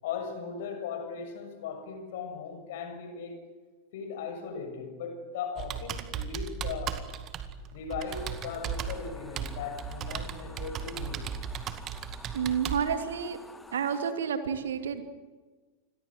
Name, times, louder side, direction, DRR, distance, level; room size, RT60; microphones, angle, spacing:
voice 1, 0.0-3.4 3.9-7.0 7.7-11.3, left 6 dB, 55° left, 6 dB, 6.9 m, -38 dB
Computer keyboard, 5.6-12.8, right 7 dB, 35° right, 2.0 m, -36 dB
sound 1, 8.1-14.1, left 2 dB, 5° left, 2.0 m, -51 dB
voice 2, 12.3-13.4 13.7-15.0, right 7 dB, 65° right, 8 dB, 2.6 m, -30 dB
28.5 x 22.0 x 7.9 m, 1.3 s
figure-of-eight pair, 90°, 0 cm